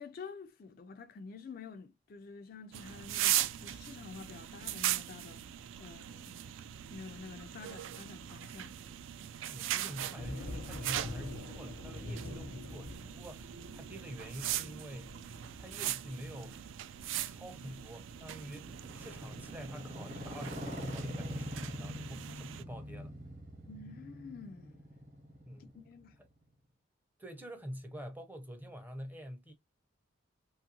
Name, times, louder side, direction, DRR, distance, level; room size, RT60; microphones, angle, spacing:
voice 1, 0.0-5.4 5.8-6.4 6.9-8.8 23.7-24.8 25.6-26.2, left 4 dB, 45° left, 0.3 m, -49 dB
sound 1, 2.7-22.6, right 12 dB, 70° right, 0.3 m, -39 dB
voice 2, 9.5-15.2 15.6-16.6 17.2-23.1 25.4-25.7 27.2-29.5, equal, 10° right, 0.5 m, -47 dB
sound 2, 10.1-18.9 20.0-20.1 20.4-21.3, left 2 dB, 85° left, 0.8 m, -47 dB
Motorcycle, 16.6-26.4, equal, 35° right, 0.9 m, -44 dB
3.0 x 2.4 x 2.8 m
head